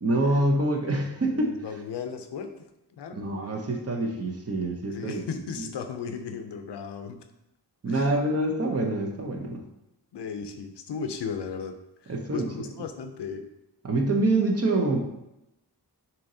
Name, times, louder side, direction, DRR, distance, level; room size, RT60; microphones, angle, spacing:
voice 1, 0.0-1.6 3.1-5.2 5.6-5.7 7.8-9.6 12.1-12.5 13.8-15.0, right 2 dB, 35° right, 2 dB, 0.7 m, -26 dB
voice 2, 1.3-2.6 3.0-3.2 4.9-7.2 7.9-8.2 10.1-11.7 12.0-13.4, left 6 dB, 80° left, 7 dB, 0.6 m, -36 dB
6.9 x 2.8 x 2.7 m, 0.88 s
wide cardioid pair, 115°, 41 cm